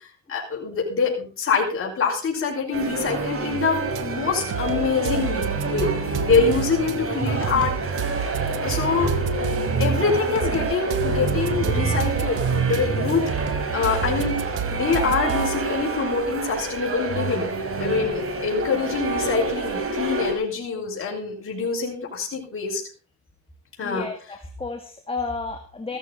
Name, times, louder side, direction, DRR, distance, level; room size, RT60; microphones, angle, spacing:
voice 1, 0.3-7.7 8.6-9.1 9.8-14.4 14.7-17.5 17.8-22.8 23.8-24.1, left 5 dB, 45° left, -2 dB, 5.4 m, -25 dB
sound 1, 2.7-20.3, right 3 dB, 45° right, 4.6 m, -27 dB
sound 2, 4.0-4.1 4.5-7.0 7.4-9.9 10.4-12.8 13.3-15.7, right 9 dB, 90° right, 1.2 m, -31 dB
voice 2, 23.8-26.0, left 4 dB, 20° left, 4 dB, 2.2 m, -32 dB
15.5 x 13.5 x 4.1 m, 0.37 s
cardioid pair, 90°, 30 cm